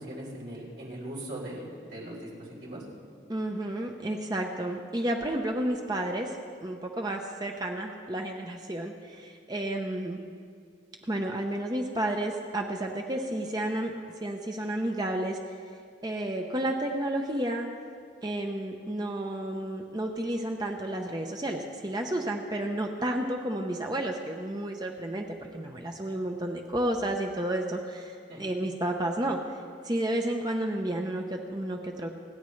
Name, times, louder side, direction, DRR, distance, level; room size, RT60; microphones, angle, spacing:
voice 1, 0.0-2.9 28.3-28.4, right 1 dB, 60° right, -4 dB, 3.9 m, -40 dB
voice 2, 3.3-6.4 6.6-10.2 11.0-13.9 14.2-15.4 16.0-17.7 18.2-32.1, right 1 dB, 20° right, 2 dB, 0.7 m, -31 dB
29.0 x 9.7 x 3.2 m, 2.2 s
head